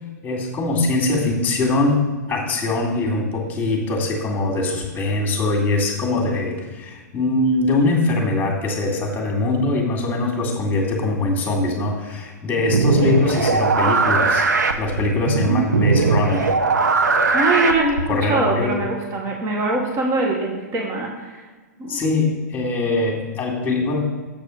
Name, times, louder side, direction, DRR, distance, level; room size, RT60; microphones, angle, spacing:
voice 1, 0.2-2.0 2.3-14.5 14.8-16.5 18.1-18.7 21.9-24.0, left 2 dB, 20° left, 0 dB, 2.1 m, -22 dB
sound 1, 12.6-18.2, right 4 dB, 85° right, 0.8 m, -19 dB
voice 2, 17.3-21.4 21.8-22.0, right 2 dB, 30° right, 0 dB, 1.3 m, -23 dB
7.6 x 4.8 x 6.4 m, 1.3 s
hypercardioid pair, 115°, 9 cm